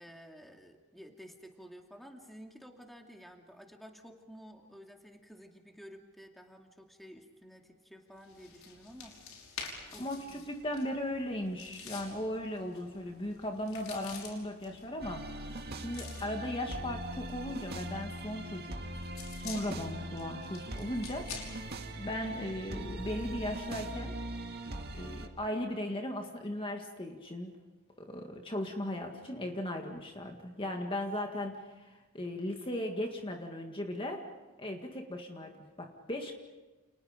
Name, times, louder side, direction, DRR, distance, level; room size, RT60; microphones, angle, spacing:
voice 1, 0.0-9.2 9.9-10.4 20.8-21.1, equal, ahead, 2 dB, 2.5 m, -52 dB
sound 1, 8.2-22.8, left 5 dB, 75° left, 5.7 m, -50 dB
voice 2, 10.0-15.5 15.8-18.8 19.3-21.3 21.5-24.2 25.0-27.6 28.0-34.3 34.6-36.3, left 1 dB, 25° left, 3 dB, 1.9 m, -37 dB
sound 2, 15.0-25.3, right 1 dB, 50° right, 2.2 m, -41 dB
30.0 x 29.5 x 5.2 m, 1.2 s
head